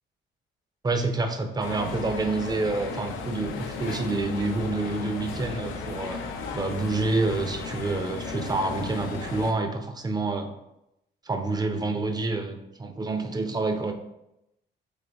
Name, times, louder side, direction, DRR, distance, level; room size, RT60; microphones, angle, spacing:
voice 1, 0.8-6.2 6.5-10.5 11.3-13.9, right 3 dB, 20° right, 7 dB, 0.5 m, -28 dB
sound 1, 1.6-9.5, left 4 dB, 85° left, 0.5 m, -35 dB
4.0 x 3.0 x 3.3 m, 0.87 s
cardioid pair, 90°, 20 cm